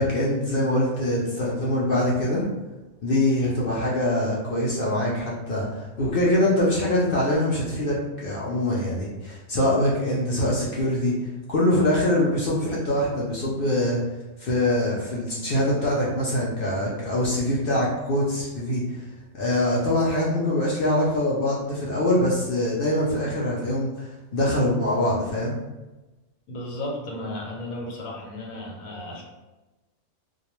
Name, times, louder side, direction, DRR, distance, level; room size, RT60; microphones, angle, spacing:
voice 1, 0.0-2.5 3.0-11.1 11.5-14.0 14.4-19.0 19.3-25.5, left 1 dB, 65° left, -5 dB, 0.6 m, -24 dB
voice 2, 26.5-29.2, left 1 dB, 85° left, -1 dB, 1.1 m, -34 dB
2.3 x 2.2 x 2.9 m, 1.1 s
omnidirectional pair, 1.4 m